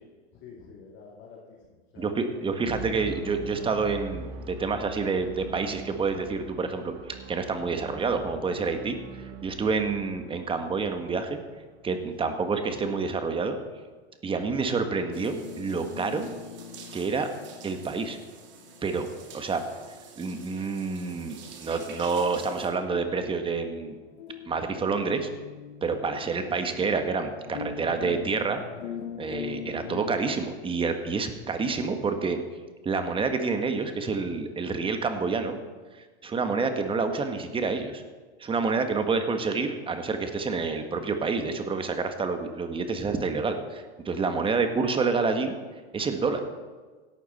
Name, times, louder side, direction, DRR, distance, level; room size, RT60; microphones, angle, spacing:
voice 1, 0.3-2.5 12.2-12.3 19.3-19.5, left 5 dB, 35° left, -4 dB, 3.0 m, -50 dB
voice 2, 2.0-6.9 7.3-11.4 11.8-13.6 14.2-16.3 16.9-17.3 17.6-18.2 18.8-19.1 19.3-19.6 20.2-24.0 24.5-25.3 25.8-28.6 29.2-32.4 32.8-35.6 35.9-38.0 38.4-45.6 45.9-46.4, right 4 dB, 15° right, 7 dB, 1.5 m, -28 dB
sound 1, 2.5-12.5, right 5 dB, 65° right, 1.9 m, -42 dB
sound 2, 14.9-30.2, left 8 dB, 80° left, 1.1 m, -43 dB
sound 3, 15.1-22.7, right 6 dB, 35° right, 2.6 m, -49 dB
16.5 x 12.0 x 4.3 m, 1.4 s
hypercardioid pair, 125°, 32 cm